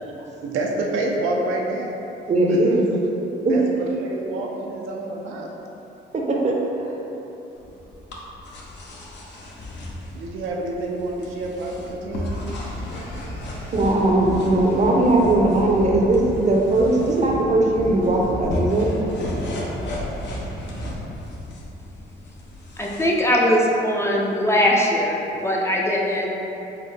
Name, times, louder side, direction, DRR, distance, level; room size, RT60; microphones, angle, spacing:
voice 1, 0.4-1.9 2.5-2.6 3.5-5.5 10.1-12.3, right 2 dB, 85° right, -1 dB, 0.5 m, -28 dB
voice 2, 2.3-2.8 3.4-3.6 6.1-7.0 13.7-18.9, right 2 dB, 35° right, -1 dB, 0.6 m, -19 dB
sound 1, 7.6-23.1, left 1 dB, 65° left, 0.7 m, -35 dB
sound 2, 12.1-21.0, equal, 90° left, 1.5 m, -33 dB
voice 3, 22.8-26.3, equal, 15° left, -3 dB, 0.4 m, -20 dB
4.5 x 2.0 x 3.2 m, 3.0 s
cardioid pair, 90°, 20 cm